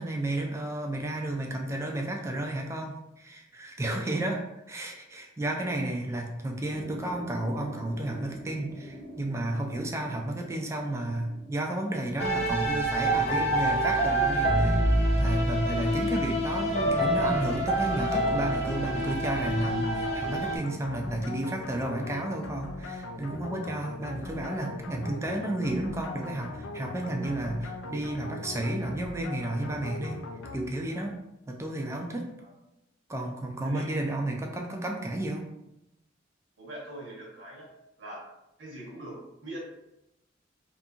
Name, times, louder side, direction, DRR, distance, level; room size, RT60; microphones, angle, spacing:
voice 1, 0.0-14.8 15.2-30.2 30.5-31.1 31.5-32.3 33.1-35.5, right 1 dB, 15° right, 2 dB, 0.3 m, -32 dB
sound 1, 6.7-12.0, equal, 5° left, 0.8 m, -45 dB
sound 2, 12.2-20.6, right 1 dB, 35° left, 0.6 m, -26 dB
sound 3, 17.8-31.1, left 2 dB, 85° left, 0.3 m, -40 dB
voice 2, 33.6-34.0 36.6-37.7 38.0-38.2 38.6-39.6, right 1 dB, 70° right, -3 dB, 0.9 m, -42 dB
2.6 x 2.5 x 2.3 m, 0.86 s
head